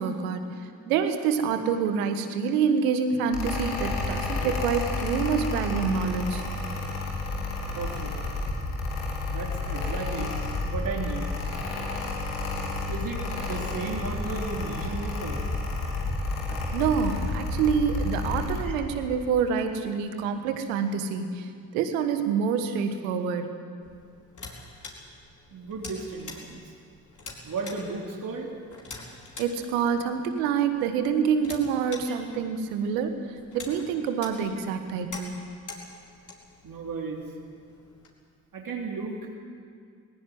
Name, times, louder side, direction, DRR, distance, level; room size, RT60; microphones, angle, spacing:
voice 1, 0.0-6.5 16.5-23.5 29.4-35.4, right 6 dB, 85° right, 7 dB, 1.5 m, -27 dB
Mechanical fan, 3.3-18.6, left 2 dB, 90° left, 3.1 m, -31 dB
voice 2, 7.8-8.1 9.3-10.3 10.7-11.3 12.9-15.4 18.6-18.7 25.5-26.7 27.4-28.5 36.6-37.2 38.5-39.3, right 4 dB, 55° right, 0 dB, 3.3 m, -34 dB
sound 1, 23.8-38.1, left 3 dB, 50° left, 4.7 m, -46 dB
19.0 x 17.0 x 9.5 m, 2.2 s
hypercardioid pair, 45°, 40 cm